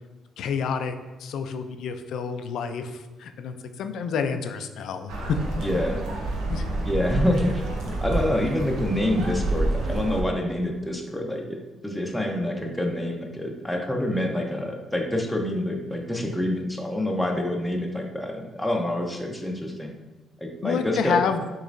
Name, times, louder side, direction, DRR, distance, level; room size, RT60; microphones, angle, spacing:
voice 1, 0.4-0.9 1.2-5.1 6.5-6.6 20.6-21.4, left 6 dB, 75° left, 8 dB, 0.4 m, -29 dB
sound 1, 5.1-10.2, right 2 dB, 85° right, 0.9 m, -28 dB
voice 2, 5.6-6.0 6.8-11.6 11.8-19.9 20.4-21.2, left 1 dB, 5° left, 0 dB, 0.7 m, -27 dB
6.6 x 3.1 x 2.5 m, 1.2 s
cardioid pair, 90°, 0 cm